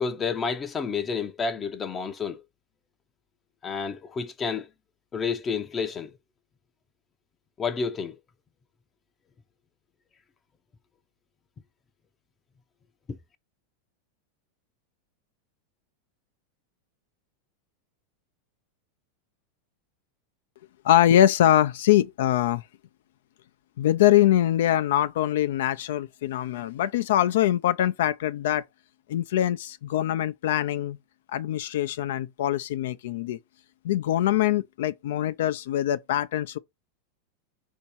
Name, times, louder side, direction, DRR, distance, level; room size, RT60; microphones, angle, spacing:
voice 1, 0.0-2.4 3.6-4.7 5.1-6.1 7.6-8.2 13.1-13.2, left 5 dB, 25° left, 0.5 m, -30 dB
voice 2, 20.8-22.6 23.8-28.6 29.1-31.0 31.3-33.4 33.8-36.6, left 12 dB, 75° left, 0.4 m, -23 dB
4.5 x 2.7 x 4.1 m
hypercardioid pair, 120°, 0 cm